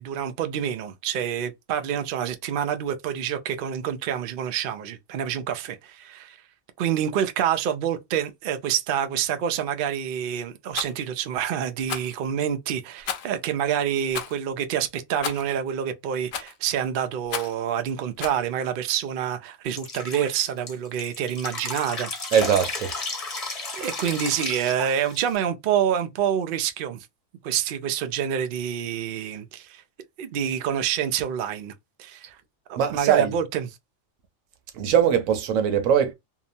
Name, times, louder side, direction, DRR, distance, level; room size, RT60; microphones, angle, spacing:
voice 1, 0.0-6.4 6.8-22.1 23.7-27.0 27.4-29.8 30.2-31.7 32.0-32.3 32.7-33.7, right 9 dB, 65° right, 0.5 m, -27 dB
Rattle, 10.7-10.9 11.8-12.2 13.0-13.4 14.1-14.4 15.2-15.5 16.3-16.6 17.3-17.6 18.2-18.4, left 8 dB, 65° left, 0.7 m, -33 dB
Drip, 19.8-25.4, left 3 dB, 35° left, 0.7 m, -33 dB
voice 2, 22.3-22.9 32.8-33.3 34.7-36.1, right 8 dB, 85° right, 1.0 m, -21 dB
2.8 x 2.0 x 2.6 m
omnidirectional pair, 1.4 m